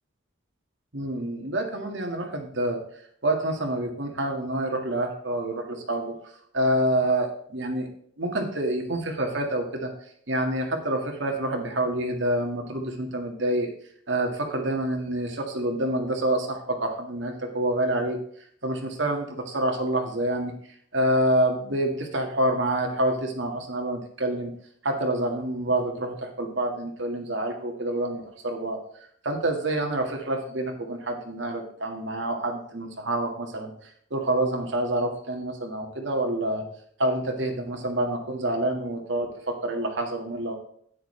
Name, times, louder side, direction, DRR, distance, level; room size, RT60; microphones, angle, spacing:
voice 1, 0.9-2.8 3.2-7.9 8.2-13.7 14.1-18.2 18.6-24.5 24.8-28.8 29.2-36.6 37.0-40.6, right 1 dB, 65° right, 3 dB, 1.9 m, -27 dB
11.0 x 9.8 x 3.3 m, 0.62 s
head